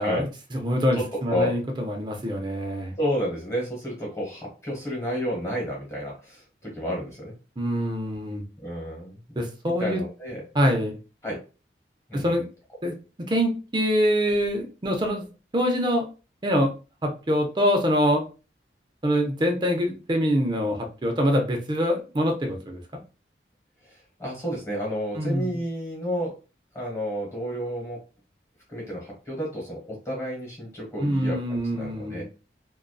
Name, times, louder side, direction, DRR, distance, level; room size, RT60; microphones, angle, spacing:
voice 1, 0.0-2.9 7.6-8.4 9.4-10.0 10.5-10.9 12.1-12.5 12.8-12.9 13.3-15.3 15.5-16.1 16.4-16.7 17.0-18.2 19.0-22.8 25.2-25.6 31.0-32.2, equal, 25° right, 3 dB, 0.5 m, -24 dB
voice 2, 0.9-1.6 3.0-7.3 8.6-9.2 9.6-10.5 11.2-11.4 12.1-12.3 23.9-26.3 26.7-28.0 28.7-32.2, equal, 15° left, -3 dB, 1.2 m, -31 dB
2.5 x 2.2 x 2.2 m, 0.33 s
head